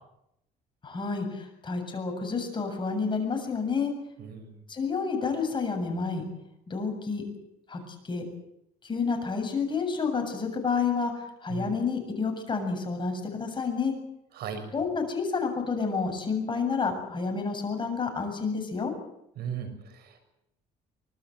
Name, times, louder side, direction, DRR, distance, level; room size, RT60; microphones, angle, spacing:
voice 1, 0.8-3.9 4.7-6.2 6.7-7.2 7.7-8.3 8.8-13.9 14.7-18.9, left 5 dB, 30° left, 4 dB, 7.6 m, -29 dB
voice 2, 4.2-4.5 11.5-11.7 14.4-14.6 19.4-20.2, right 7 dB, 70° right, 7 dB, 6.9 m, -37 dB
25.0 x 20.5 x 8.1 m, 0.81 s
cardioid pair, 110°, 17 cm